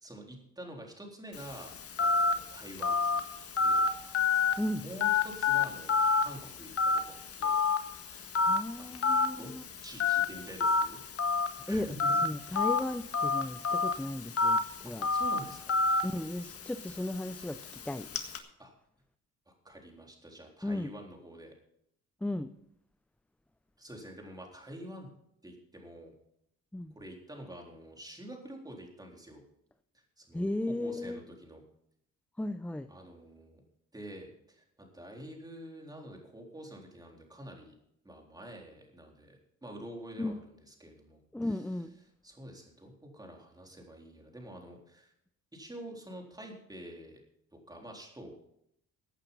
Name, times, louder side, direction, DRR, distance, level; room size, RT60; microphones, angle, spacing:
voice 1, 0.0-3.2 3.6-3.9 4.8-7.6 8.1-9.1 9.4-9.5 9.8-11.0 11.7-12.4 14.8-15.8 18.6-18.7 19.5-21.5 23.8-25.1 25.4-26.1 26.9-29.4 30.2-31.6 32.9-33.6 33.9-37.7 38.0-41.6 42.2-45.1 45.5-47.2 47.7-48.3, right 1 dB, 15° right, 1 dB, 3.8 m, -47 dB
Telephone, 1.3-18.4, left 4 dB, 50° left, 1.7 m, -30 dB
voice 2, 8.4-9.6 11.7-15.1 16.0-18.1 20.6-20.9 22.2-22.5 26.7-26.9 30.3-31.2 32.4-32.9 40.2-40.4 41.3-41.9, left 1 dB, 5° left, 11 dB, 0.6 m, -35 dB
15.5 x 8.9 x 5.5 m, 0.74 s
cardioid pair, 90°, 30 cm